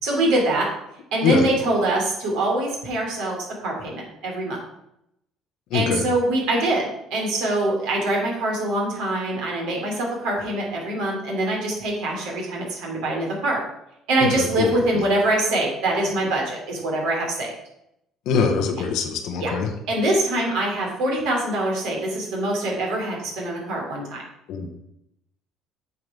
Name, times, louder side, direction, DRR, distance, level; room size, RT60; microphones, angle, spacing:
voice 1, 0.0-0.7 1.1-4.6 5.7-13.6 14.1-17.5 19.4-19.5 19.9-24.2, right 1 dB, 65° right, -2 dB, 3.2 m, -24 dB
voice 2, 5.7-6.0 14.4-14.7 18.3-19.7 24.5-24.8, left 6 dB, 60° left, 3 dB, 1.2 m, -23 dB
8.3 x 4.7 x 5.9 m, 0.81 s
figure-of-eight pair, 55°, 0 cm